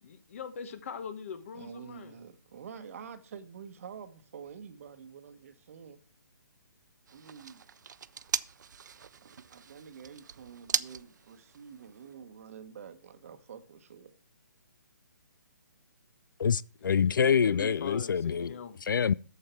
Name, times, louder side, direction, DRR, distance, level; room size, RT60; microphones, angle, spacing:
voice 1, 0.0-2.1 16.8-18.8, left 7 dB, 40° left, 1.3 m, -42 dB
voice 2, 1.5-6.0 7.1-7.6 9.2-14.1, right 7 dB, 45° right, 1.2 m, -48 dB
sound 1, 7.1-12.1, right 7 dB, 65° right, 0.5 m, -38 dB
voice 3, 16.4-19.1, left 7 dB, 80° left, 0.4 m, -26 dB
14.0 x 5.6 x 4.4 m
hypercardioid pair, 160°, 11 cm